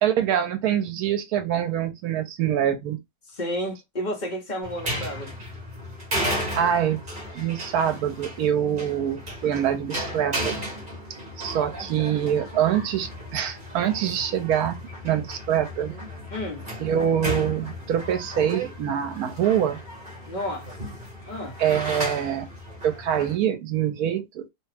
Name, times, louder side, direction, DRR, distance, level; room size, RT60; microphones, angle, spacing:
voice 1, 0.0-3.0 6.6-7.0 7.3-10.6 11.4-14.8 15.0-15.9 16.8-19.8 21.6-22.5 22.8-24.4, right 9 dB, 70° right, 1.1 m, -25 dB
voice 2, 3.3-5.4 16.3-16.7 20.2-20.7 21.3-21.6, equal, 35° left, 0.8 m, -31 dB
sound 1, 4.6-23.4, equal, 30° right, 1.2 m, -34 dB
2.9 x 2.3 x 3.3 m
omnidirectional pair, 1.7 m